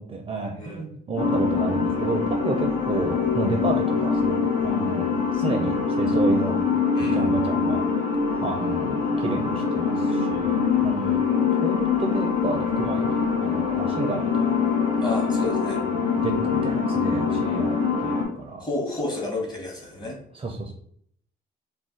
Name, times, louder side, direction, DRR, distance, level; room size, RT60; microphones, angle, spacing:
voice 1, 0.0-6.6 7.1-7.8 8.4-11.2 11.6-14.7 15.9-18.6 20.0-20.7, right 3 dB, 30° right, 2 dB, 0.4 m, -31 dB
voice 2, 0.5-0.9 6.9-7.4 15.0-15.8 17.5-17.6 18.6-20.2, left 2 dB, 20° left, 0 dB, 1.1 m, -31 dB
sound 1, 1.2-18.3, left 5 dB, 75° left, 0.9 m, -24 dB
2.5 x 2.2 x 3.7 m, 0.67 s
cardioid pair, 90°, 20 cm